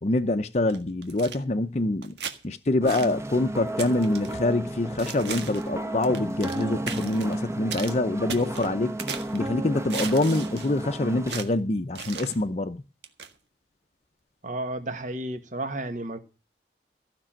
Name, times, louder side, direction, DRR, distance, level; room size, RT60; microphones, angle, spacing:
voice 1, 0.0-2.2 2.4-9.0 9.3-12.8, left 2 dB, 40° left, 0.6 m, -25 dB
sound 1, 0.7-1.4 2.0-2.4 2.9-3.1 3.8-4.3 5.0-5.7 6.0-6.6 6.9-7.3 7.7-7.9 8.3-9.4 9.9-10.7 11.3-11.5 12.0-12.4 13.0-13.3, right 6 dB, 80° right, 1.6 m, -36 dB
sound 2, 2.8-11.3, right 1 dB, 15° right, 1.0 m, -33 dB
voice 2, 14.4-16.2, right 1 dB, 45° right, 1.5 m, -32 dB
15.0 x 6.1 x 8.8 m
head